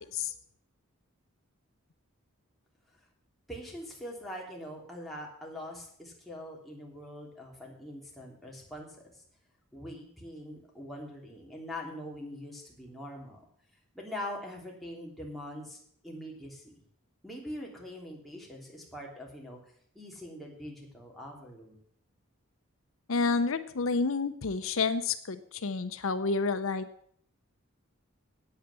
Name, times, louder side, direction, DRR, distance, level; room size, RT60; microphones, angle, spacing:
voice 1, 3.5-9.0 9.7-13.4 13.9-16.8 17.2-19.6 19.9-21.8, left 1 dB, ahead, -3 dB, 3.1 m, -43 dB
voice 2, 23.1-26.9, left 4 dB, 70° left, 10 dB, 0.7 m, -29 dB
9.1 x 8.9 x 8.2 m, 0.63 s
head